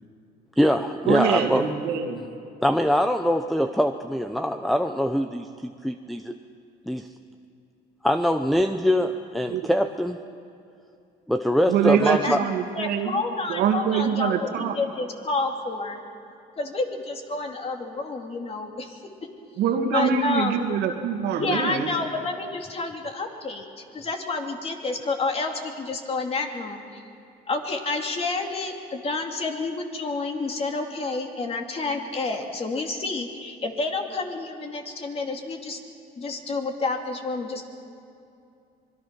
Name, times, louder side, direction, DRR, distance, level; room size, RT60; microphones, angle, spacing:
voice 1, 0.6-1.6 2.6-6.3 6.8-7.1 8.0-10.2 11.3-12.4, equal, ahead, 7 dB, 0.7 m, -23 dB
voice 2, 1.1-2.2 9.5-9.6 11.7-13.2 13.5-14.8 19.6-21.9, right 7 dB, 80° right, 4 dB, 2.4 m, -24 dB
voice 3, 12.0-12.4 12.8-16.0 16.6-19.0 19.9-20.6 21.4-27.0 27.5-35.8 36.2-37.6, left 3 dB, 35° left, 3 dB, 2.6 m, -29 dB
25.5 x 21.5 x 6.0 m, 2.6 s
cardioid pair, 110°, 17 cm